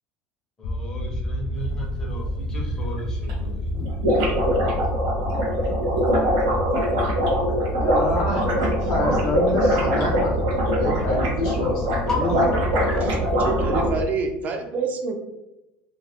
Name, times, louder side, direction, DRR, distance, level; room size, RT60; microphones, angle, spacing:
sound 1, 0.6-14.0, equal, 50° left, 0.3 m, -28 dB
voice 1, 0.6-3.7 12.1-12.8, left 1 dB, 15° left, -2 dB, 0.6 m, -33 dB
sound 2, 2.7-2.8 3.0-3.1 3.3-3.4 3.6-13.9, equal, 80° right, 0.9 m, -23 dB
voice 2, 7.8-12.5, left 1 dB, 65° left, -1 dB, 0.8 m, -28 dB
voice 3, 13.0-15.1, right 4 dB, 35° right, 3 dB, 0.4 m, -27 dB
2.3 x 2.2 x 3.2 m, 0.93 s
cardioid pair, 150°, 5 cm